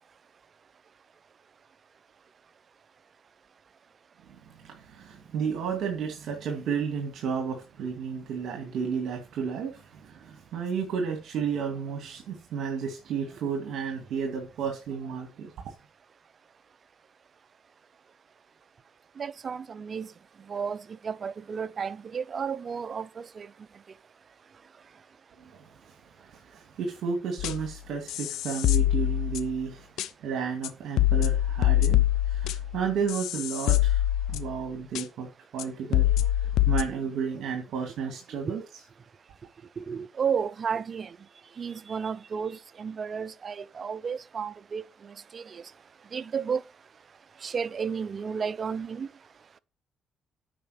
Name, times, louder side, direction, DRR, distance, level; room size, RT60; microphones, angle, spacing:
voice 1, 4.6-15.5 25.5-25.6 26.3-29.9 30.2-32.0 32.3-34.0 34.3-35.3 35.5-38.6, right 6 dB, 75° right, 2.3 m, -32 dB
voice 2, 19.2-20.1 20.5-23.5 38.5-38.6 39.8-41.2 41.6-45.6 46.1-46.6 47.4-49.1, right 6 dB, 45° right, 0.6 m, -32 dB
sound 1, 27.4-27.7 28.1-29.6 30.0-30.1 30.6-30.7 31.0-34.6 34.9-35.0 35.6-35.7 35.9-36.8, left 13 dB, 90° left, 0.6 m, -25 dB
8.9 x 5.6 x 6.4 m
cardioid pair, 90°, 0 cm